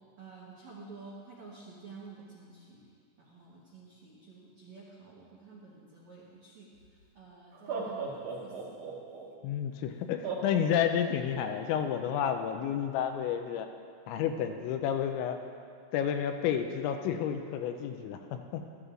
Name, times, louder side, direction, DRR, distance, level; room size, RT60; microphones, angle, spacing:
voice 1, 0.2-2.8 3.2-6.7 7.1-8.8, right 4 dB, 85° right, -6 dB, 1.6 m, -50 dB
Laughter, 6.8-6.9 7.5-9.2 10.2-11.5, right 5 dB, 55° right, 1.9 m, -37 dB
voice 2, 9.4-13.7 14.1-15.4 15.9-18.7, left 9 dB, 85° left, 6 dB, 2.9 m, -31 dB
15.0 x 14.0 x 2.5 m, 2.2 s
omnidirectional pair, 5.3 m